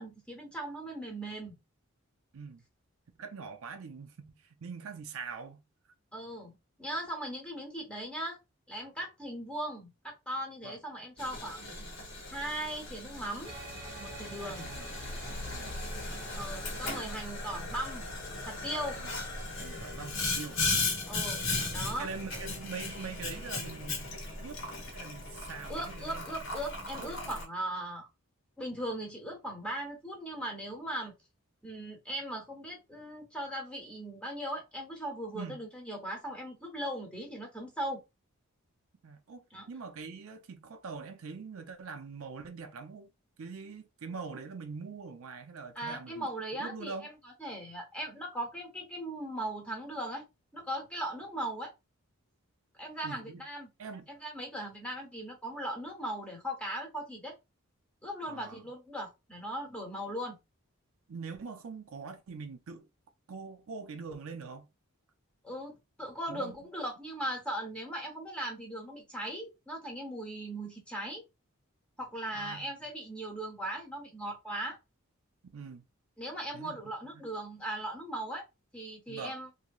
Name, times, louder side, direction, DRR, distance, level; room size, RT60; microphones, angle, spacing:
voice 1, 0.0-1.5 6.1-8.4 8.7-11.6 12.3-13.5 13.9-14.7 16.3-18.1 18.4-19.0 21.1-21.4 21.7-22.1 25.7-28.1 28.6-31.1 31.6-38.0 39.5-39.7 45.7-50.2 50.5-51.7 52.8-53.7 54.1-57.3 58.0-60.4 65.4-71.2 72.0-74.8 76.2-78.4 78.7-79.5, right 1 dB, 5° left, 0.9 m, -38 dB
voice 2, 3.2-5.6 10.6-10.8 14.4-14.9 15.3-15.8 19.0-19.1 19.6-20.6 22.0-24.1 24.4-26.3 27.0-27.4 35.3-35.6 39.0-43.1 43.4-46.3 46.5-47.1 53.0-53.4 53.8-54.1 58.3-58.6 61.1-62.9 63.3-64.7 66.3-66.5 72.3-72.7 75.5-75.8 76.5-76.8 77.1-77.2 79.1-79.4, right 5 dB, 70° right, 0.5 m, -43 dB
Boiling, 11.2-27.4, left 3 dB, 60° left, 1.0 m, -37 dB
sound 1, 13.4-22.7, right 2 dB, 20° right, 1.0 m, -50 dB
3.0 x 2.7 x 2.3 m
head